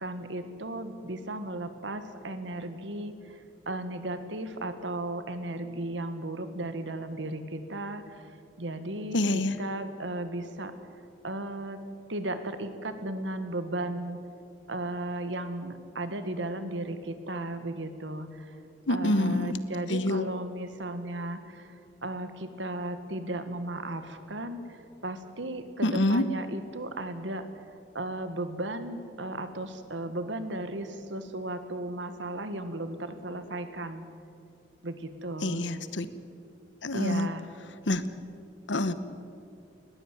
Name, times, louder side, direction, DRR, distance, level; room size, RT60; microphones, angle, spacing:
voice 1, 0.0-3.4 3.6-8.3 8.6-9.2 9.6-10.7 11.2-11.8 12.1-14.2 14.7-18.5 18.9-27.5 27.9-34.1 34.8-35.6 36.9-37.4, right 1 dB, 80° right, 10 dB, 1.7 m, -35 dB
voice 2, 9.1-9.6 18.9-19.6 19.9-20.3 25.8-26.3 35.4-36.1 36.8-37.3 37.9-38.1 38.7-38.9, left 1 dB, 75° left, 13 dB, 1.1 m, -26 dB
19.5 x 16.0 x 9.2 m, 2.5 s
head